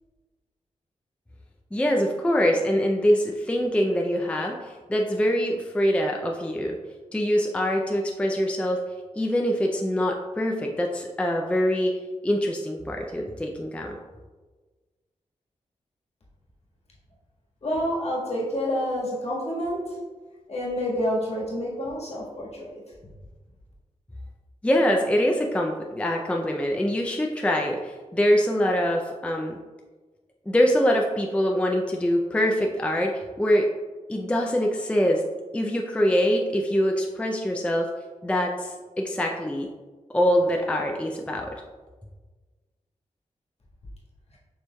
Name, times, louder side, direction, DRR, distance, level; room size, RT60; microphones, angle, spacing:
voice 1, 1.7-6.8 7.1-8.8 9.2-12.0 12.2-14.0 24.6-29.5 30.5-33.7 34.1-35.2 35.5-37.9 38.2-39.7 40.1-41.6, equal, 10° left, 0 dB, 0.4 m, -24 dB
voice 2, 17.6-19.9 20.5-22.8, equal, 55° left, -5 dB, 1.5 m, -28 dB
6.6 x 3.1 x 2.2 m, 1.3 s
cardioid pair, 75°, 13 cm